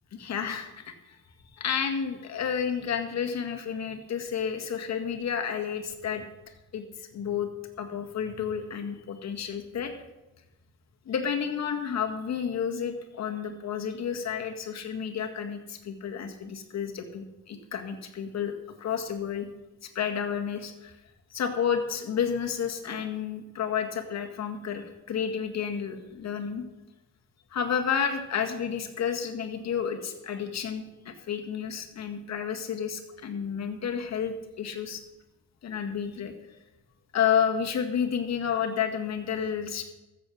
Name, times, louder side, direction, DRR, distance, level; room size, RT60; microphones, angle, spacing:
voice 1, 0.1-1.2 1.5-6.2 6.7-7.5 7.8-9.9 11.1-18.5 18.8-19.5 19.8-21.0 21.3-26.6 27.5-35.0 35.6-36.3 37.1-39.8, left 7 dB, 60° left, 5 dB, 2.0 m, -31 dB
14.0 x 7.7 x 6.4 m, 1.0 s
cardioid pair, 90°, 30 cm